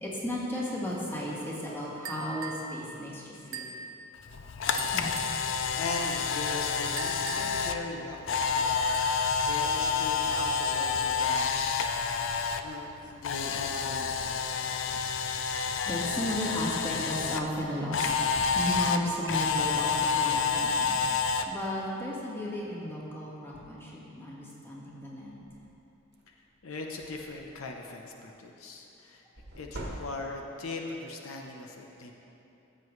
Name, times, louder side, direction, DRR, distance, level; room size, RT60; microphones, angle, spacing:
voice 1, 0.0-3.2 3.5-3.6 4.9-5.1 8.8-9.3 9.6-9.7 15.5-18.1 18.4-21.0 21.5-25.4, equal, 10° left, -6 dB, 1.7 m, -35 dB
sound 1, 2.1-2.7 3.5-3.8 4.8-5.4 7.0-7.7 8.6-9.3, right 5 dB, 80° right, 0.7 m, -41 dB
Camera, 4.3-12.6 12.9-17.4 17.9-21.4, left 5 dB, 65° left, 0.4 m, -29 dB
voice 2, 4.7-5.1 5.5-8.8 9.4-11.8 12.6-14.4 26.6-29.2 29.6-32.1, left 3 dB, 85° left, 2 dB, 0.8 m, -40 dB
sound 2, 25.4-25.7 26.2-26.3 26.6-27.7 29.4-30.6, right 1 dB, 55° right, 1.2 m, -43 dB
14.0 x 7.7 x 3.2 m, 2.8 s
head